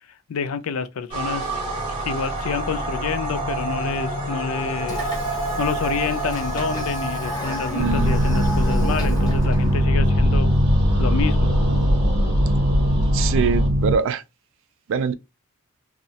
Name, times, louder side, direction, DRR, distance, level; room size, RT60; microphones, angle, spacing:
voice 1, 0.3-1.6 2.0-5.1 5.6-10.5 11.0-11.6, left 6 dB, 75° left, 0.4 m, -28 dB
sound 1, 1.1-13.7, right 1 dB, 25° right, 0.7 m, -29 dB
Train / Sliding door, 4.8-9.9, left 1 dB, 20° left, 0.6 m, -36 dB
voice 2, 7.7-8.2 13.1-14.2 14.9-15.1, right 5 dB, 60° right, 0.3 m, -23 dB
sound 2, 7.8-14.0, equal, 80° right, 0.7 m, -19 dB
2.4 x 2.0 x 2.6 m
head